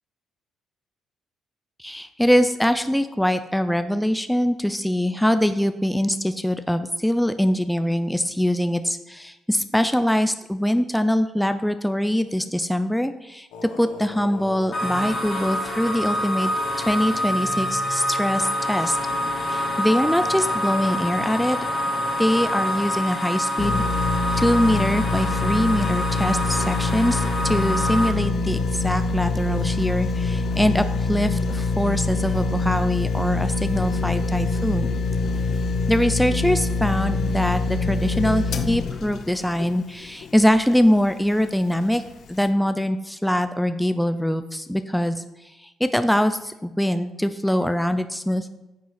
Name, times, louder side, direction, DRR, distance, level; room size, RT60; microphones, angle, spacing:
voice 1, 1.8-16.5 16.7-19.0 19.4-21.6 22.2-23.8 24.4-35.0 35.9-42.0 42.3-45.2 45.6-48.5, equal, 5° left, 10 dB, 0.5 m, -23 dB
sound 1, 13.5-23.0, left 5 dB, 90° left, 1.1 m, -39 dB
sound 2, 14.7-28.1, equal, 35° left, 2.5 m, -26 dB
sound 3, 23.6-40.8 41.3-41.4, left 3 dB, 65° left, 0.8 m, -25 dB
9.3 x 6.0 x 5.7 m, 1.0 s
cardioid pair, 90°, 0 cm